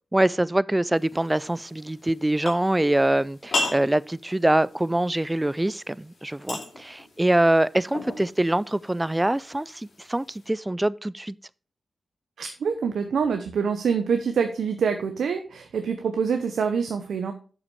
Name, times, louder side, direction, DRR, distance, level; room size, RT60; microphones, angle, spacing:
voice 1, 0.1-11.4, right 1 dB, 15° right, 0.3 m, -24 dB
sound 1, 0.9-10.5, left 2 dB, 65° left, 2.6 m, -37 dB
voice 2, 12.4-17.3, right 6 dB, 80° right, 0.7 m, -25 dB
6.8 x 5.8 x 4.7 m
cardioid pair, 50°, 0 cm